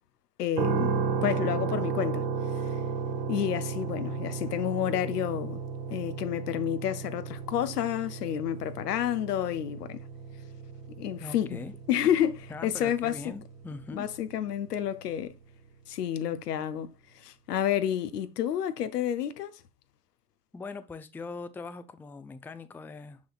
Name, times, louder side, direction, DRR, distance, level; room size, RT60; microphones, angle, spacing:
voice 1, 0.4-2.2 3.3-5.6 5.9-10.0 11.0-11.6 11.9-13.3 13.9-15.3 15.9-16.9 17.2-19.6, left 10 dB, 80° left, 0.7 m, -30 dB
sound 1, 0.6-14.6, right 5 dB, 50° right, 1.2 m, -34 dB
voice 2, 11.2-11.8 12.5-14.1 20.5-23.2, left 3 dB, 5° left, 0.4 m, -41 dB
7.1 x 6.2 x 2.4 m
figure-of-eight pair, 65°, 47 cm